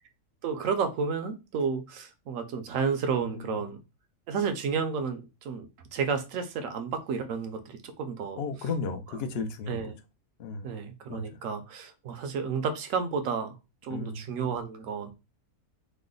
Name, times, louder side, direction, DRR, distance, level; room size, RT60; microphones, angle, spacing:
voice 1, 0.4-3.8 4.3-5.7 5.9-8.4 9.7-9.9 10.6-13.6 13.8-15.1, right 5 dB, 75° right, 7 dB, 0.9 m, -31 dB
voice 2, 3.2-3.6 8.4-9.8 10.4-10.7 11.1-11.4 13.9-14.6, left 4 dB, 65° left, 7 dB, 0.6 m, -35 dB
3.1 x 2.0 x 3.7 m, 0.27 s
omnidirectional pair, 1.5 m